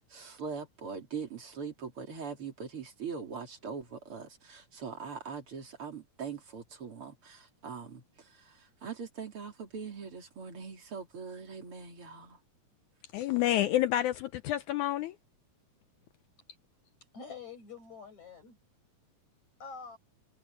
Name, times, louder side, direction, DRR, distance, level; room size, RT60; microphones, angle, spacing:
voice 1, 0.0-12.4, right 5 dB, 40° right, 3.7 m, -42 dB
voice 2, 13.1-15.2, left 13 dB, 85° left, 1.7 m, -29 dB
voice 3, 17.1-18.6 19.6-20.0, left 5 dB, 50° left, 7.7 m, -46 dB
omnidirectional pair, 4.2 m